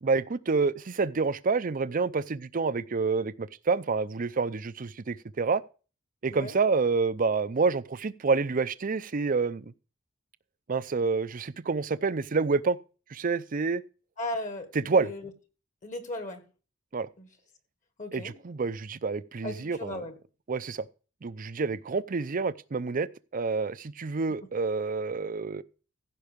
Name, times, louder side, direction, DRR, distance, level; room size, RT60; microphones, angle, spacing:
voice 1, 0.0-5.6 6.2-9.7 10.7-12.8 13.1-13.8 14.7-15.1 16.9-17.1 18.1-20.0 20.5-20.8 21.2-23.1 23.3-25.6, right 4 dB, 45° right, 0.5 m, -28 dB
voice 2, 14.2-15.3 15.8-16.4 17.2-17.3 18.0-18.3 19.4-20.1, left 2 dB, 40° left, 1.6 m, -36 dB
15.5 x 5.5 x 5.1 m
head